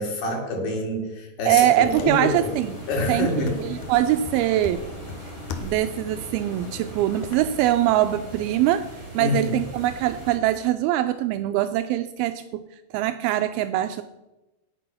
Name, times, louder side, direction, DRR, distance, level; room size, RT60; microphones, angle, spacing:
voice 1, 0.0-2.4 2.9-3.6 9.2-9.5, left 2 dB, 90° left, 0 dB, 4.5 m, -26 dB
voice 2, 1.5-2.7 3.1-4.8 5.6-8.9 9.1-12.6 12.9-14.0, right 13 dB, 85° right, 9 dB, 2.4 m, -23 dB
sound 1, 1.8-10.4, right 3 dB, 45° right, 5.9 m, -40 dB
sound 2, 1.9-7.3, left 6 dB, 70° left, 2.1 m, -39 dB
18.0 x 6.1 x 5.6 m, 1.0 s
omnidirectional pair, 4.4 m